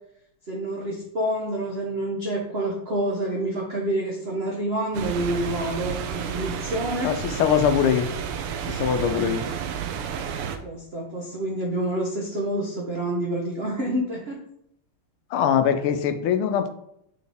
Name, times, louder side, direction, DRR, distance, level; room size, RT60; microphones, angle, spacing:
voice 1, 0.5-7.2 8.8-9.5 10.4-14.4, right 1 dB, 70° right, -1 dB, 0.6 m, -28 dB
sound 1, 4.9-10.6, right 7 dB, 90° right, 1.6 m, -31 dB
voice 2, 7.4-8.1 8.7-9.4 15.3-16.7, left 8 dB, 80° left, 10 dB, 1.4 m, -22 dB
6.5 x 4.3 x 3.5 m, 0.74 s
omnidirectional pair, 2.4 m